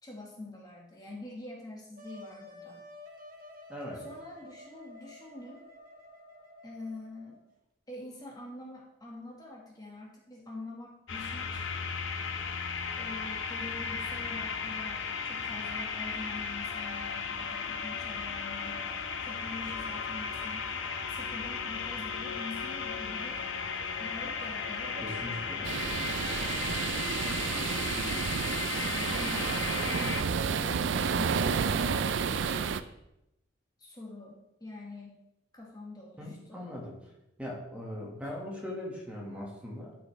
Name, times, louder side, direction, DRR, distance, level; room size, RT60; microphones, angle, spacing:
voice 1, 0.0-2.8 3.9-5.6 6.6-7.4 7.9-11.9 13.0-19.0 19.2-20.7 21.1-23.5 24.0-25.8 26.9-28.4 28.7-32.9 33.8-35.2 35.5-36.7, left 2 dB, 20° left, -2 dB, 1.6 m, -45 dB
Wind instrument woodwind instrument, 2.0-7.5, left 1 dB, 45° right, 1.4 m, -51 dB
voice 2, 3.7-4.0 25.0-25.7 36.2-37.0 37.4-40.0, left 1 dB, 5° right, -3 dB, 1.6 m, -40 dB
sound 1, 11.1-30.2, left 5 dB, 75° left, 0.8 m, -35 dB
sound 2, 25.6-32.8, right 6 dB, 65° right, 0.4 m, -30 dB
12.0 x 6.2 x 3.3 m, 0.87 s
head